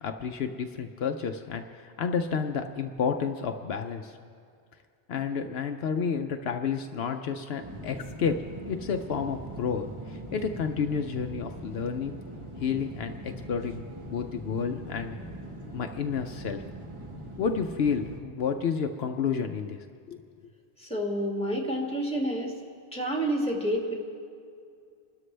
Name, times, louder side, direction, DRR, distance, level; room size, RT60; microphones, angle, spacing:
voice 1, 0.0-4.2 5.1-12.2 12.6-15.2 15.7-16.6 17.4-20.2, left 6 dB, 70° left, 6 dB, 0.9 m, -31 dB
sound 1, 7.6-18.2, right 1 dB, 30° right, 1.3 m, -41 dB
voice 2, 20.8-22.5 22.9-23.9, equal, 5° left, -1 dB, 2.0 m, -29 dB
27.0 x 13.0 x 3.3 m, 2.3 s
omnidirectional pair, 1.1 m